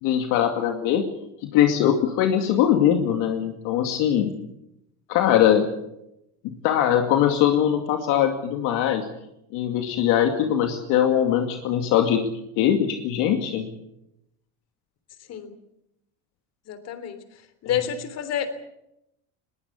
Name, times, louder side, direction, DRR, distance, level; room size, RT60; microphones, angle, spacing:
voice 1, 0.0-1.0 1.4-4.3 5.1-5.7 6.6-9.1 9.5-12.2 12.6-13.7, left 10 dB, 70° left, 4 dB, 2.4 m, -21 dB
voice 2, 16.7-18.5, left 9 dB, 50° left, 12 dB, 3.5 m, -29 dB
21.0 x 18.5 x 8.3 m, 0.83 s
supercardioid pair, 115°, 34 cm